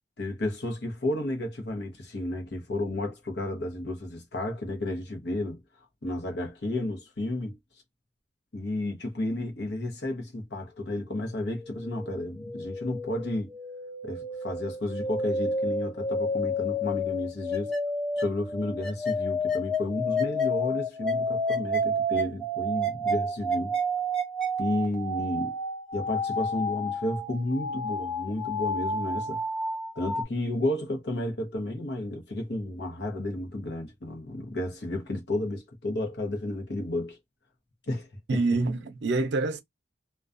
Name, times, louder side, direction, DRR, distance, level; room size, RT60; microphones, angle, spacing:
voice 1, 0.2-5.6 6.0-7.6 8.5-13.5 14.0-17.7 18.2-23.8 24.6-25.5 25.9-29.4 30.0-37.2 37.9-38.1, left 1 dB, 70° left, 0.8 m, -32 dB
sound 1, 11.1-30.2, left 1 dB, 5° left, 0.5 m, -30 dB
voice 2, 38.3-39.6, right 3 dB, 75° right, 0.5 m, -26 dB
2.3 x 2.2 x 2.5 m
head